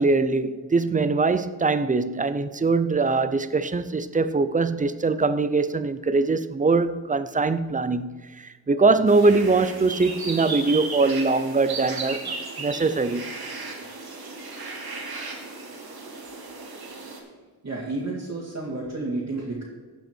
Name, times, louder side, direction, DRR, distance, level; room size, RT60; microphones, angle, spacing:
voice 1, 0.0-12.3 12.6-13.3, right 3 dB, 20° right, 0.5 m, -22 dB
sound 1, 9.1-17.2, right 3 dB, 60° right, 1.9 m, -35 dB
voice 2, 17.6-19.6, right 2 dB, 45° right, 2.2 m, -31 dB
16.0 x 5.5 x 4.5 m
cardioid pair, 75°, 41 cm